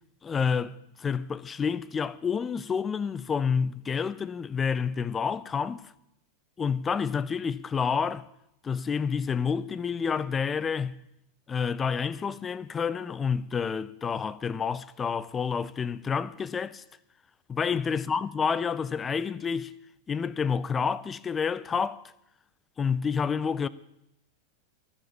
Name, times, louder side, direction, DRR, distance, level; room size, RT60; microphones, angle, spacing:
voice 1, 0.2-5.8 6.6-8.3 8.6-11.0 11.5-16.8 17.5-19.7 20.1-22.0 22.8-23.7, left 6 dB, 20° left, 0.5 m, -29 dB
12.5 x 7.7 x 8.2 m
figure-of-eight pair, 90°, 0 cm